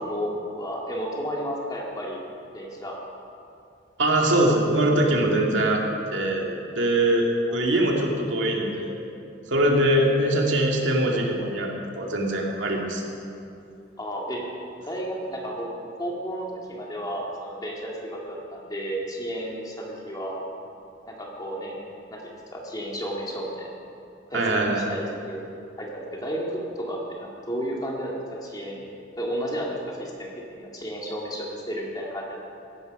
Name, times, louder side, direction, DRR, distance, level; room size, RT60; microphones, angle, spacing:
voice 1, 0.0-2.2 2.5-3.0 7.5-7.6 9.9-10.2 14.0-14.4 14.9-20.5 21.1-21.8 22.1-22.2 22.5-23.7 24.3-25.4 25.8-28.9 29.2-32.4, equal, 20° left, -2 dB, 2.4 m, -32 dB
voice 2, 4.0-5.8 6.1-9.0 9.5-13.0 24.3-24.9, right 1 dB, 90° right, 0 dB, 2.3 m, -22 dB
16.0 x 12.5 x 5.4 m, 2.6 s
head